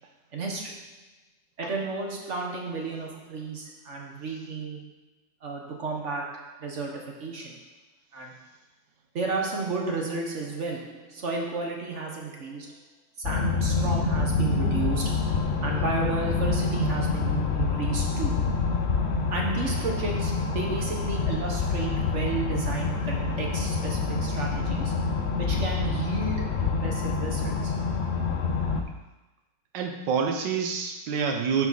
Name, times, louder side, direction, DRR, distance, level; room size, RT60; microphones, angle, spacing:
voice 1, 0.3-0.8 1.6-4.9 5.4-7.6 8.1-8.3 9.1-12.8 13.2-18.5 19.3-24.9 25.4-27.7, right 3 dB, 45° right, 0 dB, 1.4 m, -33 dB
sound 1, 13.2-28.8, left 4 dB, 60° left, 0.7 m, -27 dB
voice 2, 29.7-31.7, right 6 dB, 75° right, 3 dB, 1.6 m, -28 dB
9.6 x 5.0 x 4.1 m, 1.0 s
omnidirectional pair, 2.0 m